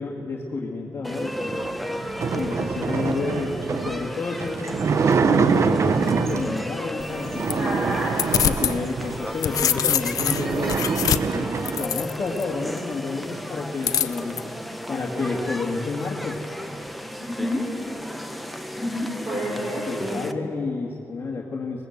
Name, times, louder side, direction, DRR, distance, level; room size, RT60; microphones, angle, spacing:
voice 1, 0.0-1.5 2.3-4.9 5.2-8.0 8.4-10.9 11.3-14.5 14.9-16.4 19.5-21.8, left 3 dB, 45° left, -2 dB, 2.0 m, -30 dB
sound 1, 1.0-20.3, equal, ahead, 1.1 m, -35 dB
sound 2, 1.5-6.7 7.2-9.3 9.7-9.8 10.1-11.9, right 5 dB, 50° right, 0.6 m, -25 dB
sound 3, 7.0-8.8 9.1-12.4 13.8-14.4, left 9 dB, 80° left, 0.6 m, -25 dB
voice 2, 7.6-8.2 17.2-17.7 18.8-20.2, equal, 30° right, -5 dB, 5.0 m, -29 dB
20.5 x 20.5 x 8.0 m, 2.9 s
cardioid pair, 100°, 6 cm